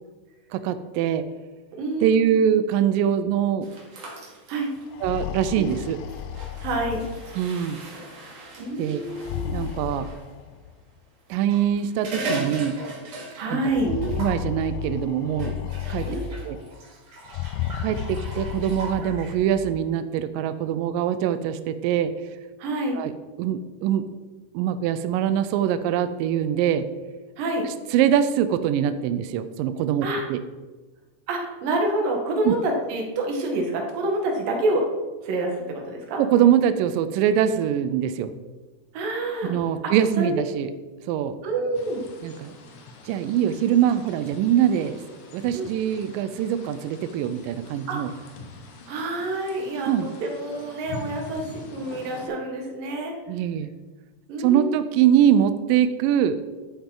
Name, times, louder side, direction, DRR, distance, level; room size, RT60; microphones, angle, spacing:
voice 1, 0.5-1.3 2.0-3.7 5.0-6.0 7.4-7.8 8.8-9.0 9.5-10.1 11.3-12.8 13.5-13.6 13.9-15.6 15.9-16.1 16.5-16.6 17.8-22.1 23.0-23.1 23.4-24.1 24.5-26.9 27.9-30.4 32.5-32.6 36.2-38.3 39.5-40.7 41.1-41.4 42.2-42.5 43.1-45.0 45.3-48.1 49.9-50.1 53.3-53.7 54.4-56.4, right 9 dB, 90° right, 11 dB, 1.9 m, -23 dB
voice 2, 1.8-2.4 4.5-4.7 5.6-5.7 6.6-7.0 8.6-9.6 13.4-13.9 16.1-16.4 22.6-23.0 27.4-27.6 30.0-30.2 31.3-34.9 35.2-36.2 38.9-39.5 39.8-40.3 41.4-42.0 45.5-45.7 47.9-48.3 48.9-53.1 54.3-54.8, right 2 dB, 65° right, 1 dB, 3.0 m, -27 dB
sound 1, 3.6-10.2 11.3-13.7 13.9-14.4 15.4-19.3, right 2 dB, 50° right, 2.7 m, -38 dB
sound 2, 4.8-7.7 9.0-10.7 11.7-11.8 12.2-12.3 13.6-16.7 17.3-19.9, left 9 dB, 80° left, 2.2 m, -33 dB
sound 3, 41.7-52.3, left 2 dB, 65° left, 2.0 m, -44 dB
11.0 x 8.2 x 3.8 m, 1.3 s
omnidirectional pair, 4.5 m